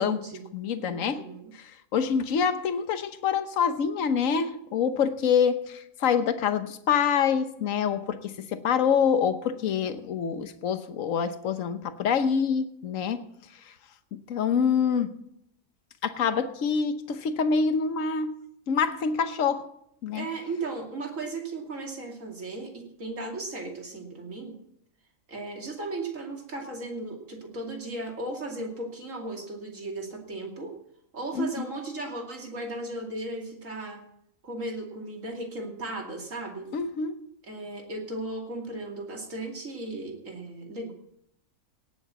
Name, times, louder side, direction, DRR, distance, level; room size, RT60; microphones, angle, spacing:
voice 1, 0.0-0.5 0.8-1.5 20.1-24.5 25.3-30.7 31.1-34.0 34.4-36.7 37.5-40.9, right 2 dB, 65° right, 1 dB, 3.0 m, -36 dB
voice 2, 0.5-1.3 1.5-13.2 13.5-13.7 14.1-15.1 16.0-18.4 18.7-19.7 20.0-20.3 31.3-31.6 36.7-37.2, left 6 dB, 65° left, 10 dB, 1.3 m, -26 dB
18.0 x 7.1 x 7.0 m, 0.74 s
omnidirectional pair, 1.5 m